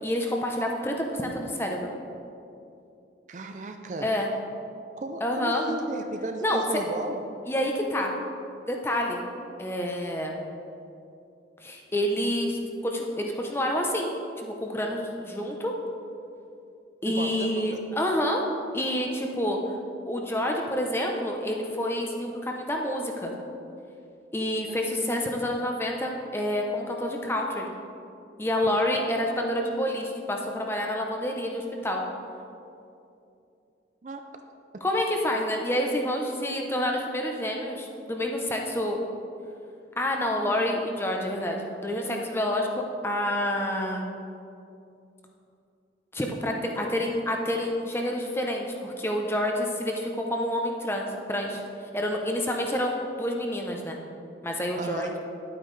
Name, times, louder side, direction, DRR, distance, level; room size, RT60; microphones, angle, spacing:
voice 1, 0.0-1.9 4.0-4.3 5.2-5.6 6.4-6.6 7.5-8.1 8.7-9.2 9.6-10.3 11.6-12.6 12.8-14.1 14.4-15.7 17.0-18.4 18.7-19.6 20.1-23.3 24.3-27.7 28.4-32.0 34.8-39.0 40.0-42.7 43.0-44.0 46.1-51.6 51.9-54.0 54.4-55.2, left 1 dB, 15° left, 1 dB, 0.7 m, -28 dB
voice 2, 3.3-4.1 5.0-7.3 17.1-17.8 24.7-25.0 34.0-34.3 54.8-55.2, right 2 dB, 40° right, 5 dB, 0.5 m, -35 dB
10.5 x 8.9 x 3.3 m, 2.7 s
head